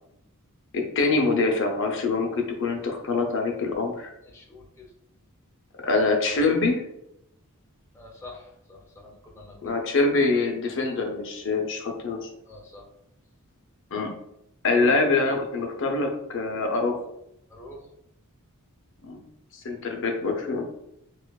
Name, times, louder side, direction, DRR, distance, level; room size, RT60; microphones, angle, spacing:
voice 1, 0.7-4.1 5.8-6.8 9.6-12.3 13.9-14.1 14.6-17.0 19.0-19.2 19.5-20.6, left 3 dB, 60° left, 3 dB, 0.6 m, -24 dB
voice 2, 4.2-4.9 7.9-9.7 12.5-12.9 17.5-17.9, left 2 dB, 10° left, -2 dB, 0.5 m, -46 dB
4.3 x 2.4 x 2.3 m, 0.79 s
head